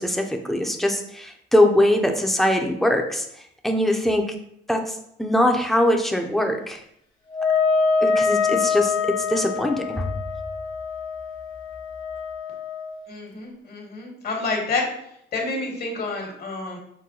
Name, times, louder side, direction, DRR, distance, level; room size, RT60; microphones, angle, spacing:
voice 1, 0.0-3.3 3.6-4.3 4.7-4.8 5.2-6.8 8.0-8.9 9.3-10.1, left 1 dB, ahead, 3 dB, 0.6 m, -21 dB
Wind instrument woodwind instrument, 7.3-13.0, left 5 dB, 85° left, 1.2 m, -25 dB
voice 2, 13.1-14.9 15.3-16.8, left 3 dB, 55° left, 1 dB, 1.3 m, -28 dB
5.8 x 2.2 x 3.7 m, 0.73 s
cardioid pair, 90°, 20 cm